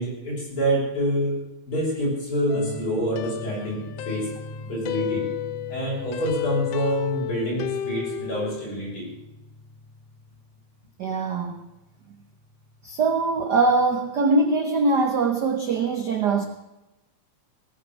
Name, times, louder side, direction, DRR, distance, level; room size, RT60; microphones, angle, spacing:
voice 1, 0.0-4.3 4.7-5.3 5.7-9.1, right 1 dB, 45° left, -3 dB, 7.2 m, -27 dB
sound 1, 2.5-8.7, left 12 dB, 75° left, 1.5 m, -32 dB
sound 2, 2.5-13.7, left 1 dB, 40° right, 2.0 m, -42 dB
voice 2, 11.0-11.6 12.8-16.4, right 3 dB, 70° right, 6 dB, 0.9 m, -22 dB
18.5 x 9.6 x 7.4 m, 0.99 s
omnidirectional pair, 3.3 m